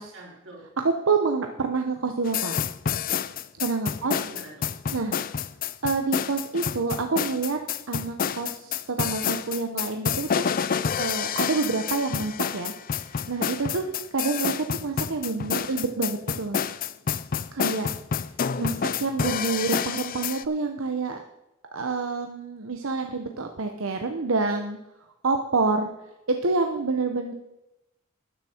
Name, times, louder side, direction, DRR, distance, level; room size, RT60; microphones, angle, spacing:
voice 1, 0.1-0.7 4.0-4.7, right 2 dB, 65° right, -3 dB, 4.2 m, -45 dB
voice 2, 0.8-2.5 3.6-4.2 4.9-5.2 5.8-7.6 7.9-10.4 11.0-16.6 17.5-17.9 18.6-21.2 21.7-24.8 25.2-25.9 26.3-27.3, right 4 dB, 90° right, 5 dB, 0.9 m, -27 dB
sound 1, 2.2-20.4, left 7 dB, 45° left, 0.4 m, -28 dB
13.0 x 9.8 x 4.4 m, 0.93 s
head